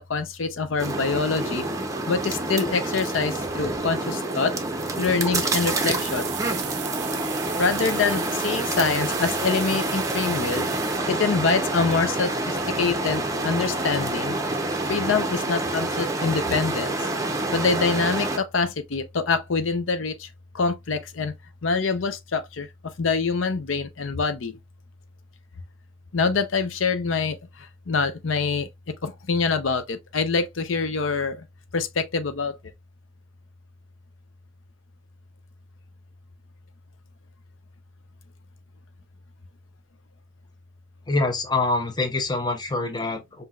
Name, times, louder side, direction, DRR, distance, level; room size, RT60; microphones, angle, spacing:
voice 1, 0.0-1.6 2.1-4.5 5.0-6.3 7.6-10.7 11.1-14.3 14.9-17.0 17.5-20.1 20.5-21.3 21.6-22.7 23.0-24.5 26.1-27.4 27.9-28.7 29.0-31.4 31.7-32.5, left 4 dB, 90° left, 0.6 m, -25 dB
sound 1, 0.8-18.4, right 2 dB, 15° right, 0.7 m, -27 dB
sound 2, 5.3-11.0, right 14 dB, 60° right, 0.4 m, -37 dB
voice 2, 41.1-43.4, left 2 dB, 20° left, 0.7 m, -25 dB
5.6 x 2.7 x 2.3 m
head